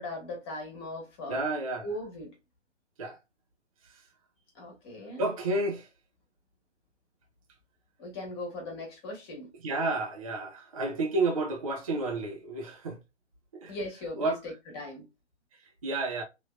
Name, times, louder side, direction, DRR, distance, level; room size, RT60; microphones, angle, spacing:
voice 1, 0.0-1.4 1.8-2.3 4.5-5.2 8.0-9.5 13.7-15.1, left 1 dB, 20° left, 1.2 m, -39 dB
voice 2, 1.3-2.0 3.0-3.2 3.8-4.1 5.2-5.9 9.5-13.0 13.5-14.6 15.5-16.2, right 2 dB, 30° right, 0.5 m, -31 dB
3.2 x 2.8 x 2.3 m
figure-of-eight pair, 135°, 37 cm